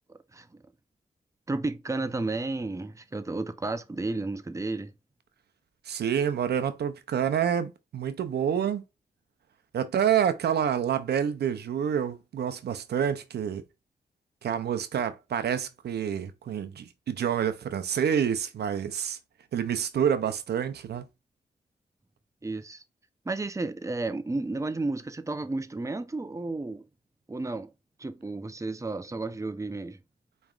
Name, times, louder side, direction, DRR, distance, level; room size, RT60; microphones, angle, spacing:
voice 1, 0.3-0.6 1.5-4.9 22.4-22.8 23.3-26.9 27.3-27.7 28.0-30.0, right 2 dB, 20° right, 0.6 m, -32 dB
voice 2, 5.9-8.8 9.7-13.6 14.4-19.2 19.5-21.1, right 8 dB, 85° right, 0.5 m, -28 dB
4.8 x 3.0 x 2.4 m
cardioid pair, 45°, 17 cm